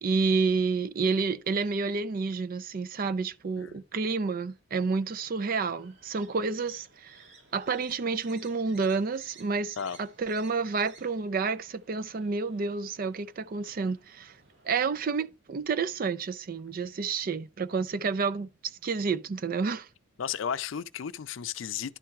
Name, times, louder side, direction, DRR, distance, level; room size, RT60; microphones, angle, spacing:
voice 1, 0.0-7.2 7.5-14.4 14.6-18.5 18.8-19.9, right 4 dB, 50° right, 0.4 m, -29 dB
sound 1, 5.0-15.3, right 4 dB, 70° right, 1.9 m, -58 dB
voice 2, 20.2-22.0, left 7 dB, 85° left, 0.5 m, -34 dB
11.0 x 4.4 x 3.5 m
head